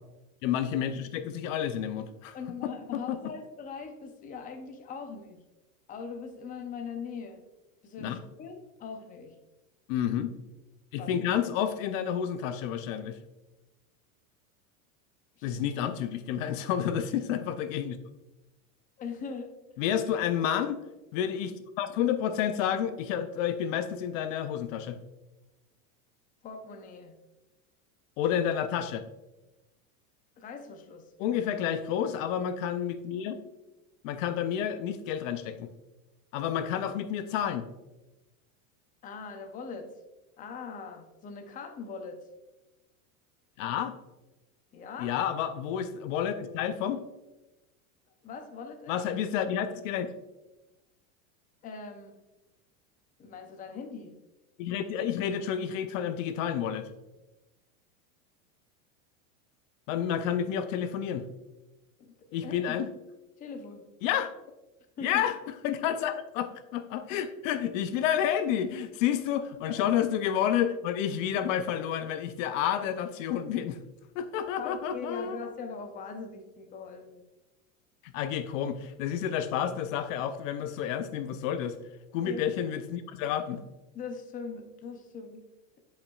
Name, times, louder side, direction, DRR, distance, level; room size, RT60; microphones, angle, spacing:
voice 1, 0.4-2.4 2.9-3.2 8.0-8.2 9.9-10.4 10.9-13.2 15.4-18.0 19.8-20.8 21.1-25.0 28.2-29.0 31.2-33.4 34.0-35.7 36.3-37.7 43.6-43.9 45.0-47.0 48.9-50.1 54.6-56.9 59.9-61.3 62.3-62.9 64.0-64.3 65.0-65.4 65.6-73.8 74.2-75.4 78.0-81.8 82.1-83.6, left 9 dB, 60° left, 10 dB, 0.6 m, -30 dB
voice 2, 2.3-5.4 5.9-7.4 7.8-9.4 11.0-11.1 15.4-15.6 19.0-19.5 26.4-27.1 30.4-31.0 39.0-39.9 40.4-42.2 44.7-45.2 48.2-49.0 51.6-52.1 53.2-54.1 62.0-62.8 63.4-63.8 65.0-65.2 74.6-77.2 82.2-82.5 83.9-85.4, left 5 dB, 20° left, 5 dB, 0.6 m, -41 dB
10.0 x 5.3 x 2.4 m, 1.0 s
supercardioid pair, 140°, 44 cm